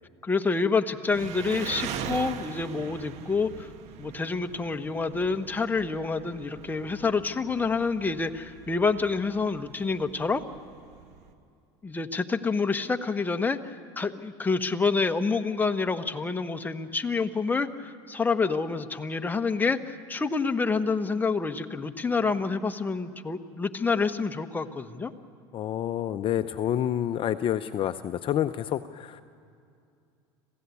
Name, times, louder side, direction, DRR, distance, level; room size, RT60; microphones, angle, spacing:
voice 1, 0.2-3.7 4.0-10.4 11.8-25.1, left 4 dB, 15° left, 6 dB, 1.1 m, -28 dB
Engine, 1.1-11.3, right 8 dB, 60° right, 1.6 m, -41 dB
voice 2, 25.5-29.2, left 10 dB, 45° left, 10 dB, 0.6 m, -28 dB
26.5 x 16.0 x 8.4 m, 2.4 s
supercardioid pair, 95°, 13 cm